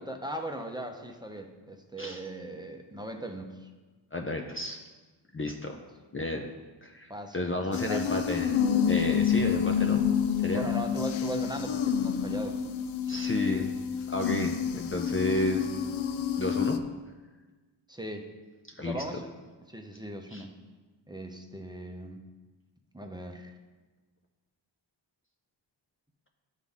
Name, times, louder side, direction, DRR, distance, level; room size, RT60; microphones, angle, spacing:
voice 1, 0.0-3.7 5.7-5.8 7.1-8.2 10.5-12.6 17.9-18.3 18.8-19.3 19.7-20.5 21.1-22.2 22.9-23.5, right 1 dB, 10° right, 3 dB, 0.7 m, -38 dB
voice 2, 4.1-4.8 5.3-5.8 6.1-6.5 6.8-8.6 8.9-10.0 10.4-10.7 13.1-13.7 14.1-15.7 16.4-16.8 18.8-19.0 20.3-20.5, left 2 dB, 25° left, 3 dB, 0.5 m, -32 dB
sound 1, 7.7-16.8, left 7 dB, 75° left, 0.6 m, -28 dB
11.0 x 3.9 x 3.6 m, 1.3 s
cardioid pair, 55°, 47 cm